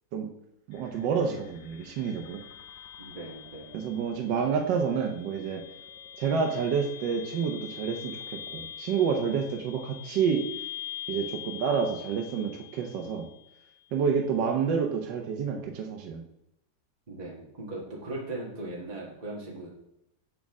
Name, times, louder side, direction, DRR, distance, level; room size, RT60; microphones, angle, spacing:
sound 1, 0.7-13.7, left 10 dB, 85° left, 1.5 m, -44 dB
voice 1, 0.7-2.4 3.7-5.6 6.2-10.4 11.1-13.3 13.9-16.2, right 6 dB, 80° right, 2 dB, 1.4 m, -29 dB
voice 2, 3.0-3.8 17.1-19.7, right 2 dB, 25° right, -4 dB, 1.3 m, -39 dB
7.4 x 6.3 x 3.5 m, 0.84 s
omnidirectional pair, 1.9 m